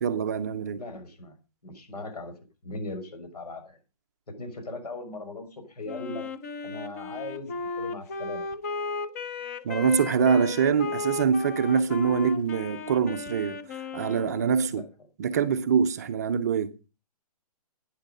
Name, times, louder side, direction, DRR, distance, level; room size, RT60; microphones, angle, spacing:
voice 1, 0.0-0.8 9.6-13.6 13.9-14.8 15.2-16.7, right 6 dB, 25° right, 0.6 m, -24 dB
voice 2, 0.8-1.3 1.6-2.3 2.6-3.8 4.3-6.3 6.6-8.4 10.2-10.3 14.7-14.9, left 2 dB, 75° left, 5.9 m, -38 dB
Wind instrument woodwind instrument, 5.9-14.7, left 4 dB, 25° left, 0.8 m, -35 dB
12.0 x 10.0 x 5.0 m
hypercardioid pair, 170°, 20 cm